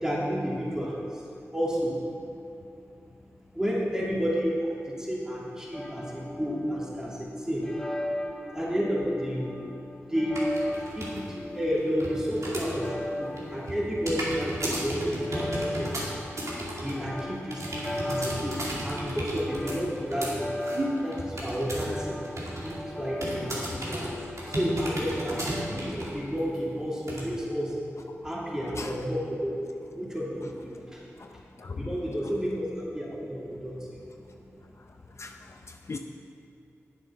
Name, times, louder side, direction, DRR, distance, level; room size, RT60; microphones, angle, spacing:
voice 1, 0.0-1.2 1.5-2.0 3.5-7.7 8.5-9.6 10.1-15.9 16.8-17.6 18.0-18.6 18.8-20.5 21.0-22.2 22.6-24.0 24.5-27.8 28.2-29.5 29.9-31.0 31.7-34.0, equal, 10° right, -6 dB, 2.8 m, -31 dB
sound 1, 5.7-25.7, left 1 dB, 5° left, 1.0 m, -38 dB
sound 2, 10.3-11.2 11.5-12.9 13.2-22.0 22.2-22.8 23.2-26.2 26.5-26.6 27.1-27.2, right 1 dB, 70° right, 2.3 m, -34 dB
voice 2, 31.2-31.9 35.2-36.0, left 4 dB, 60° left, 4 dB, 0.6 m, -39 dB
9.9 x 7.6 x 5.7 m, 2.8 s
cardioid pair, 45°, 5 cm